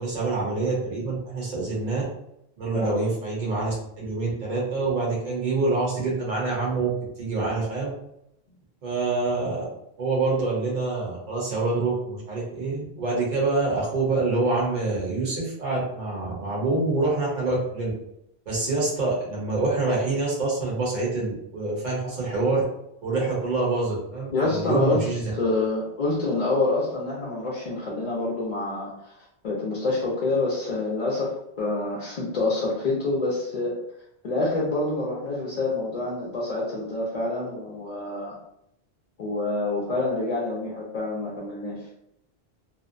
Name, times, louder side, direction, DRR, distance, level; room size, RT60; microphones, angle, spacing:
voice 1, 0.0-2.0 2.6-6.9 7.2-7.9 8.8-9.6 10.0-17.9 18.5-22.6 23.0-25.2, right 3 dB, 45° right, -5 dB, 0.9 m, -26 dB
voice 2, 24.3-25.1 25.4-29.2 29.4-33.8 34.2-38.4 39.2-41.9, left 2 dB, 50° left, -5 dB, 0.5 m, -27 dB
2.6 x 2.0 x 2.5 m, 0.79 s
omnidirectional pair, 1.1 m